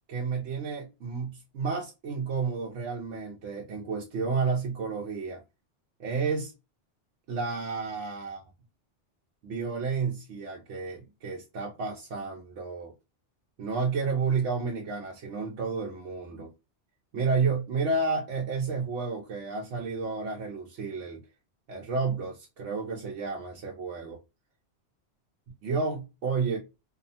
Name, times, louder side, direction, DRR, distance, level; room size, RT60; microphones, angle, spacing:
voice 1, 0.1-5.4 6.0-6.5 7.3-8.4 9.4-12.9 13.6-16.5 17.1-21.2 21.7-24.2 25.6-26.6, right 4 dB, 85° right, 1.0 m, -31 dB
2.8 x 2.1 x 2.6 m
omnidirectional pair, 1.2 m